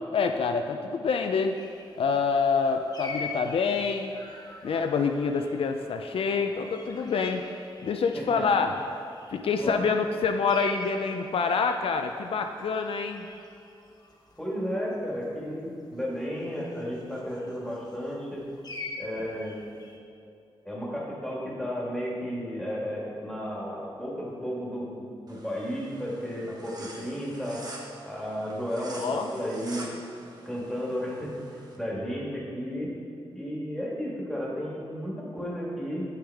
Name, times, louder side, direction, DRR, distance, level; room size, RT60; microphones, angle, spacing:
voice 1, 0.1-1.6 1.9-4.1 4.6-7.4 7.8-8.7 9.3-13.3 29.0-29.3, left 5 dB, 70° left, 5 dB, 0.4 m, -26 dB
sound 1, 1.5-8.4 8.7-15.5 16.6-18.1 18.6-20.0, left 3 dB, 40° left, 1.0 m, -44 dB
voice 2, 8.1-8.4 9.6-9.9 14.4-18.4 19.0-19.7 20.6-27.6 28.0-29.9 30.4-31.3 31.8-32.9 33.3-36.0, equal, 5° left, -5 dB, 1.7 m, -33 dB
sound 2, 25.3-31.8, right 1 dB, 40° right, 1.1 m, -46 dB
7.9 x 6.6 x 3.4 m, 2.5 s
wide cardioid pair, 100°, 10 cm